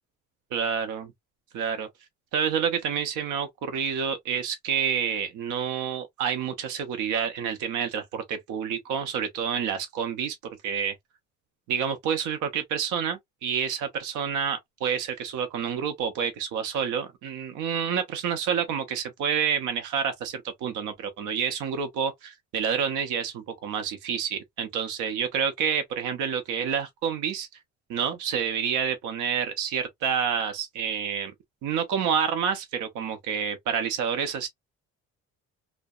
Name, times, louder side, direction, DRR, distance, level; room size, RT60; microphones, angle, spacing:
voice 1, 0.5-1.1 1.5-1.9 2.3-10.4 10.6-11.0 11.7-27.5 27.9-31.3 31.6-34.5, right 7 dB, 80° right, 0.7 m, -28 dB
2.7 x 2.1 x 2.2 m
cardioid pair, 140°, 30 cm